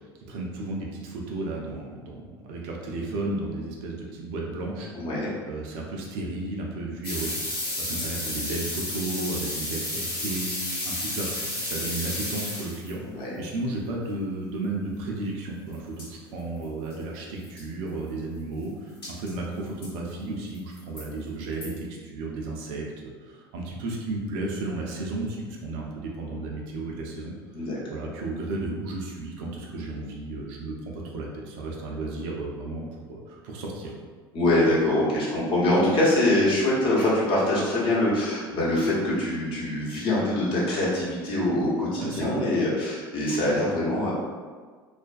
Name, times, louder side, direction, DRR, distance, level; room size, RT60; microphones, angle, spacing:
voice 1, 0.0-4.9 5.5-27.3 27.9-33.9 42.0-42.5, right 2 dB, 60° right, -2 dB, 0.5 m, -33 dB
voice 2, 4.9-5.3 13.1-13.4 27.5-27.8 34.3-44.1, left 1 dB, 45° left, -6 dB, 0.9 m, -24 dB
sound 1, 7.0-12.9 15.7-15.8 16.0-16.1 16.6-16.7 16.9-17.0 17.4-17.6 19.0-19.3 19.8-19.9 20.5-21.0 21.6-21.7, left 1 dB, 85° left, 1.0 m, -32 dB
2.4 x 2.1 x 2.5 m, 1.5 s
figure-of-eight pair, 70°, 13 cm